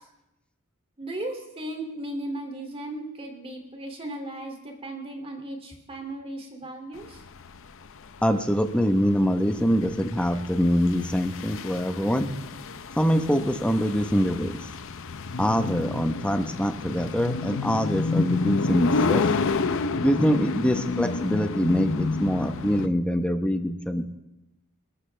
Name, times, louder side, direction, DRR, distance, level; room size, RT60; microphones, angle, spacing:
voice 1, 1.0-7.2, right 1 dB, 25° right, 3 dB, 2.6 m, -36 dB
sound 1, 7.0-22.9, left 4 dB, 65° left, 0.7 m, -30 dB
voice 2, 8.2-12.3 13.0-14.5 15.4-19.3 20.0-24.0, equal, 5° left, 7 dB, 1.0 m, -24 dB
27.5 x 13.0 x 3.4 m, 0.94 s
head